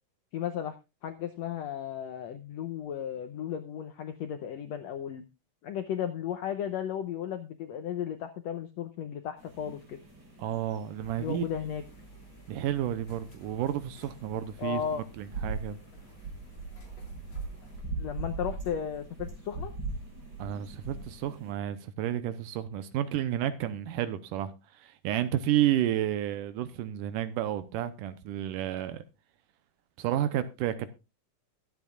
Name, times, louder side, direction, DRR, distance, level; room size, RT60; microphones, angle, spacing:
voice 1, 0.3-0.8 1.0-5.2 5.6-10.0 11.2-11.8 14.6-15.0 18.0-19.7, left 9 dB, 80° left, 1.5 m, -35 dB
sound 1, 9.4-21.5, right 3 dB, 35° right, 4.6 m, -41 dB
voice 2, 10.4-11.4 12.5-15.8 20.4-29.0 30.0-30.9, right 11 dB, 80° right, 2.3 m, -31 dB
sound 2, 11.0-17.8, right 2 dB, 40° left, 3.5 m, -54 dB
22.0 x 8.0 x 2.4 m
omnidirectional pair, 3.9 m